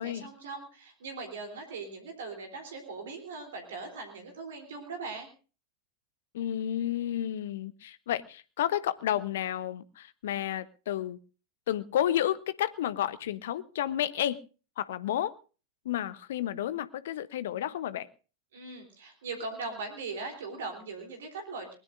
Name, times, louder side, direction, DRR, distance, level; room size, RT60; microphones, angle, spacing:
voice 1, 0.0-5.3 18.5-21.7, right 3 dB, 60° right, 4 dB, 3.6 m, -40 dB
voice 2, 6.3-11.2 11.7-14.4 14.8-15.3 15.8-18.1, left 11 dB, 60° left, 17 dB, 0.9 m, -31 dB
21.5 x 20.0 x 2.6 m, 0.37 s
figure-of-eight pair, 90°, 0 cm